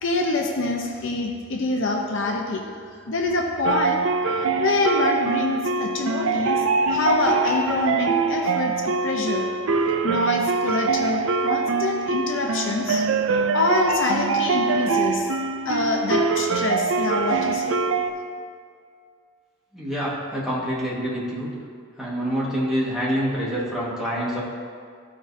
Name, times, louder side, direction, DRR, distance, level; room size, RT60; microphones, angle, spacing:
voice 1, 0.0-2.6 3.0-4.0 4.6-9.5 10.0-13.0 13.5-15.3 15.6-17.8, left 2 dB, 60° left, 1 dB, 0.7 m, -25 dB
sound 1, 3.6-18.1, right 4 dB, 60° right, 0.4 m, -23 dB
voice 2, 19.7-21.5 22.0-24.4, equal, ahead, -8 dB, 1.5 m, -26 dB
14.0 x 4.9 x 2.7 m, 2.2 s
head